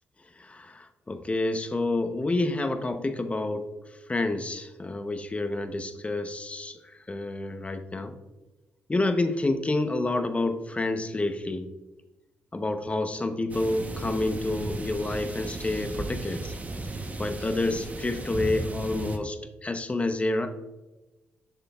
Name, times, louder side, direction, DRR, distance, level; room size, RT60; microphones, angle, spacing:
voice 1, 0.4-3.7 4.1-8.1 8.9-11.7 12.5-16.5 17.2-20.5, left 2 dB, 25° left, 8 dB, 0.8 m, -29 dB
sound 1, 13.5-19.2, right 2 dB, 30° right, 1.0 m, -35 dB
7.8 x 6.6 x 2.4 m, 1.1 s
supercardioid pair, 50°, 5 cm